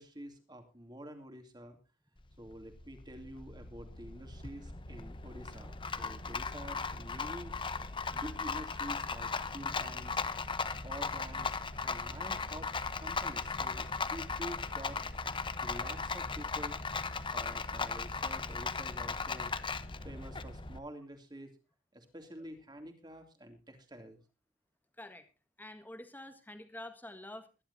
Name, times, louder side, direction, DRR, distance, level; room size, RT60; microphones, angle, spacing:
voice 1, 0.0-1.8 2.4-7.5 8.1-10.2 10.8-12.7 13.0-15.0 15.6-16.8 17.3-19.5 20.0-21.5 21.9-24.2, equal, 20° right, 6 dB, 2.6 m, -48 dB
Rattle, 2.2-20.8, left 4 dB, 25° left, 0.8 m, -37 dB
voice 2, 25.6-27.5, left 1 dB, 10° left, 8 dB, 1.7 m, -47 dB
22.5 x 11.5 x 2.7 m, 0.30 s
head